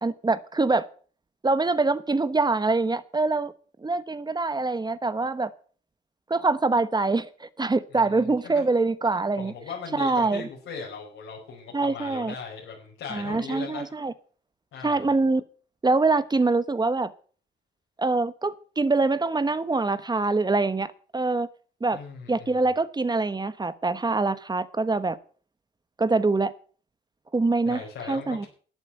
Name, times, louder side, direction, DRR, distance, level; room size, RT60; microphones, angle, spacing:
voice 1, 0.0-0.8 1.4-3.5 3.8-5.5 6.3-9.5 9.9-10.5 11.7-12.3 13.1-14.1 14.8-15.4 15.8-17.1 18.0-21.5 21.8-22.0 22.3-25.2 26.0-26.5 27.3-28.5, right 3 dB, 20° right, 14 dB, 1.1 m, -24 dB
voice 2, 9.4-13.9 14.7-15.2 21.9-22.5 27.7-28.5, left 5 dB, 80° left, -2 dB, 5.3 m, -38 dB
12.0 x 8.4 x 9.0 m, 0.42 s
cardioid pair, 90°, 20 cm